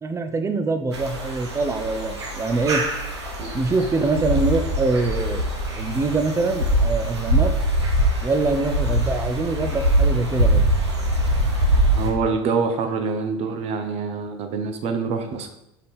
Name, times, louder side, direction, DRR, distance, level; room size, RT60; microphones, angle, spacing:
voice 1, 0.0-2.8 3.5-5.5 5.7-7.5 8.2-10.6, right 3 dB, 20° right, 9 dB, 0.7 m, -24 dB
sound 1, 0.9-12.1, right 1 dB, 85° right, 1.2 m, -23 dB
voice 2, 11.9-15.5, right 5 dB, 50° right, 7 dB, 1.0 m, -25 dB
5.3 x 5.1 x 4.3 m, 0.86 s
hypercardioid pair, 75°, 14 cm